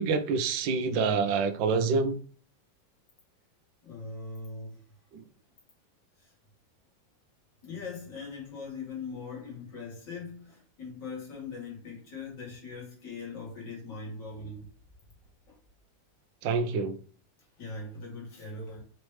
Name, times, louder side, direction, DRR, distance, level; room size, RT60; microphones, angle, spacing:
voice 1, 0.0-2.2 5.1-5.2 16.4-17.0, right 4 dB, 85° right, 1.3 m, -27 dB
voice 2, 3.8-4.8 6.2-6.3 7.6-14.7 15.5-15.6 17.6-18.8, left 4 dB, 65° left, 2.5 m, -41 dB
5.2 x 3.1 x 3.2 m
omnidirectional pair, 2.0 m